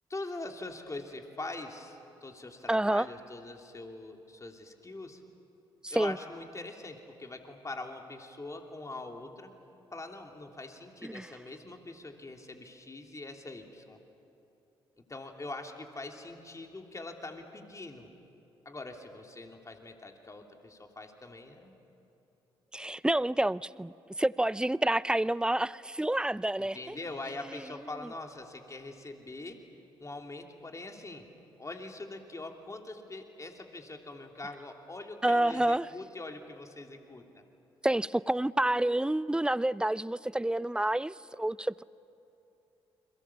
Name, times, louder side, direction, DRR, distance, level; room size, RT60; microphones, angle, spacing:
voice 1, 0.1-5.2 5.9-9.5 9.9-14.0 15.1-18.1 18.6-21.7 26.6-29.6 30.0-31.3 31.6-37.3, left 2 dB, 25° left, 3.1 m, -43 dB
voice 2, 2.7-3.1 5.8-6.2 11.0-11.3 22.7-23.9 24.2-27.0 35.2-35.9 37.8-41.8, right 1 dB, 5° right, 0.5 m, -28 dB
29.5 x 22.5 x 7.2 m
hypercardioid pair, 45°, 12 cm